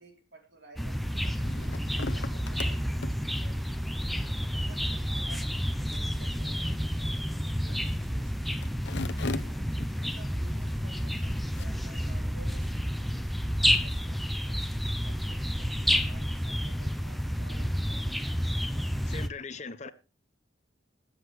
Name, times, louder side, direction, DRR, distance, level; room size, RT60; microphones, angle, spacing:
voice 1, 0.0-3.8 4.4-8.6 9.1-13.4 13.8-14.7 15.0-18.2 18.7-19.1 19.8-19.9, right 2 dB, 65° right, 3.8 m, -54 dB
sound 1, 0.8-19.3, equal, ahead, 0.6 m, -30 dB
sound 2, 1.0-12.1, left 3 dB, 70° left, 0.8 m, -43 dB
voice 2, 19.1-19.9, left 4 dB, 40° left, 0.7 m, -39 dB
20.5 x 8.0 x 3.3 m
head